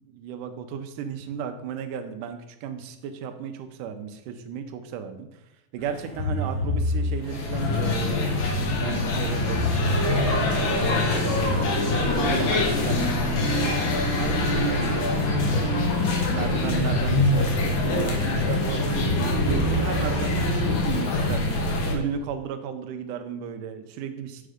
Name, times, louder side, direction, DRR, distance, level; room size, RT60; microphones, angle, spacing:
voice 1, 0.0-5.3 5.7-11.8 12.1-13.8 14.2-15.9 16.3-24.5, right 7 dB, 75° right, 7 dB, 2.2 m, -34 dB
sound 1, 5.8-22.0, left 1 dB, 5° left, 2.4 m, -32 dB
sound 2, 7.2-21.9, left 2 dB, 65° left, 1.2 m, -24 dB
6.5 x 6.0 x 5.0 m, 0.97 s
omnidirectional pair, 3.8 m